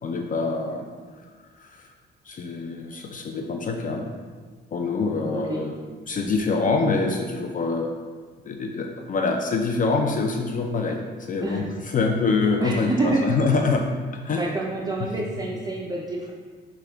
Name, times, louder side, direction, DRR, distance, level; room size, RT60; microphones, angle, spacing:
voice 1, 0.0-0.9 1.2-1.3 1.6-1.9 2.2-4.1 4.7-5.7 6.1-7.9 8.4-14.5 15.0-15.1, left 4 dB, 40° left, 3 dB, 0.4 m, -25 dB
voice 2, 12.6-13.3 14.3-16.3, right 2 dB, 20° right, -3 dB, 0.5 m, -27 dB
6.0 x 2.3 x 3.4 m, 1.5 s
cardioid pair, 90°, 20 cm